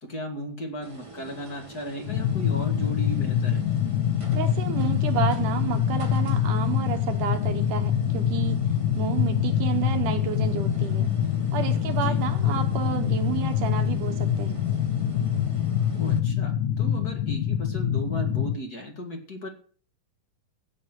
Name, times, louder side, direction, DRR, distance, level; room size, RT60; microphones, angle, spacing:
voice 1, 0.0-3.6 11.9-12.2 15.9-19.5, equal, 30° left, 3 dB, 2.1 m, -36 dB
sound 1, 0.8-16.2, right 2 dB, 20° right, 0.9 m, -45 dB
sound 2, 2.1-18.5, left 9 dB, 75° left, 2.4 m, -25 dB
voice 2, 4.3-8.6 8.9-11.1 11.5-14.6, right 10 dB, 70° right, 6 dB, 2.5 m, -30 dB
16.5 x 6.7 x 6.1 m, 0.44 s
omnidirectional pair, 4.1 m